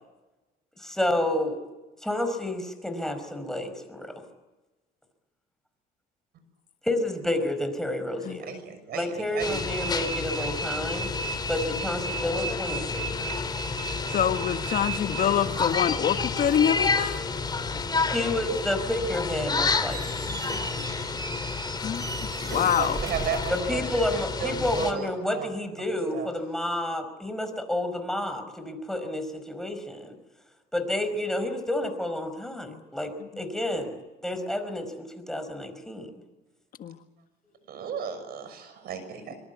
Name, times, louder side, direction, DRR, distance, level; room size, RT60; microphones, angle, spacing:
voice 1, 0.8-1.6 2.0-4.1 6.8-8.5 8.9-11.1 11.5-13.1 18.1-20.3 23.5-30.2 30.7-34.0 34.2-36.1, left 1 dB, 5° left, 7 dB, 5.1 m, -30 dB
voice 2, 8.4-9.5 22.5-24.0 24.4-25.5 26.1-26.3 37.7-39.4, right 7 dB, 65° right, 11 dB, 6.2 m, -34 dB
sound 1, 9.4-24.9, left 3 dB, 25° left, 3.1 m, -30 dB
voice 3, 14.1-17.2 20.3-21.1 21.8-23.0 32.7-32.8 36.8-37.0, left 9 dB, 55° left, 8 dB, 1.5 m, -26 dB
Squeak, 19.8-24.5, right 3 dB, 20° right, 2.5 m, -38 dB
24.5 x 23.0 x 8.3 m, 1.1 s
cardioid pair, 110°, 17 cm